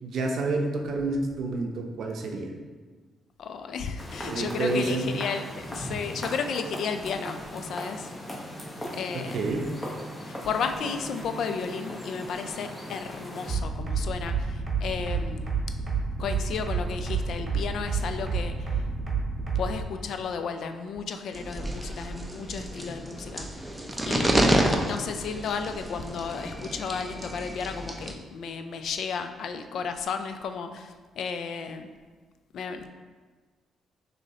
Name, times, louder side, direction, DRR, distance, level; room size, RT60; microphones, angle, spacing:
voice 1, 0.0-2.5 4.2-5.1 9.1-9.7, right 2 dB, 65° right, 2 dB, 0.6 m, -29 dB
voice 2, 3.4-8.1 8.9-9.4 10.3-15.5 16.2-18.8 19.5-23.7 24.1-31.9 32.5-32.9, left 6 dB, 65° left, 8 dB, 0.3 m, -33 dB
sound 1, 4.0-13.6, equal, 20° left, 1.0 m, -38 dB
sound 2, 13.5-19.8, right 5 dB, 35° right, 1.0 m, -29 dB
sound 3, 21.3-28.1, right 1 dB, 10° right, 0.5 m, -29 dB
6.1 x 2.8 x 2.8 m, 1.4 s
cardioid pair, 90°, 0 cm